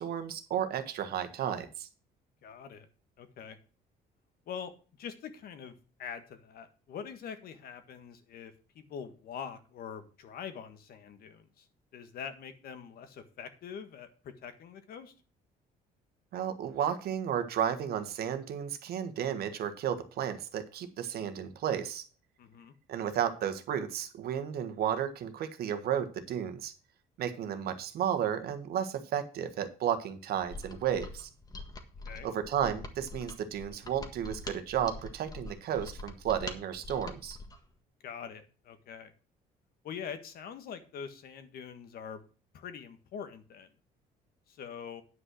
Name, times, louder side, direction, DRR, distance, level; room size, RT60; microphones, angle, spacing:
voice 1, 0.0-1.9 16.3-22.1 22.9-26.7 27.2-31.3 32.2-37.4, right 9 dB, 70° right, 9 dB, 1.5 m, -33 dB
voice 2, 2.4-2.9 3.2-3.6 4.5-4.7 5.0-5.7 6.0-11.7 11.9-15.1 22.4-22.7 32.1-32.3 38.0-39.1 39.8-42.2 42.5-43.7 44.5-45.0, left 7 dB, 60° left, 9 dB, 1.6 m, -44 dB
Mechanisms, 30.4-37.6, left 2 dB, 20° left, 1.6 m, -44 dB
9.7 x 5.6 x 6.3 m, 0.36 s
cardioid pair, 110°, 17 cm